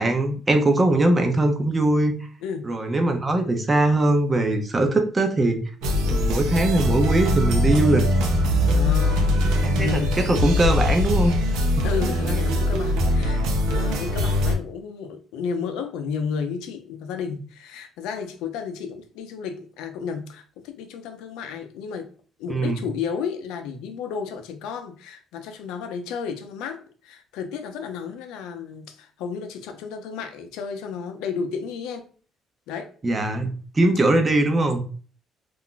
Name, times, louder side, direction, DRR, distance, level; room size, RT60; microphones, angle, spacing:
voice 1, 0.0-2.1 2.6-5.6 6.0-8.1 9.8-9.9 10.2-11.4 11.8-11.9 22.5-22.8 33.0-34.8, right 2 dB, 25° right, 0.7 m, -21 dB
voice 2, 2.4-2.7 8.7-9.4 9.7-10.2 11.8-22.1 22.4-32.1 32.7-32.9, left 6 dB, 90° left, 0.5 m, -32 dB
sound 1, 5.8-14.5, left 1 dB, 85° right, 0.6 m, -22 dB
2.5 x 2.1 x 3.8 m
cardioid pair, 90°, 0 cm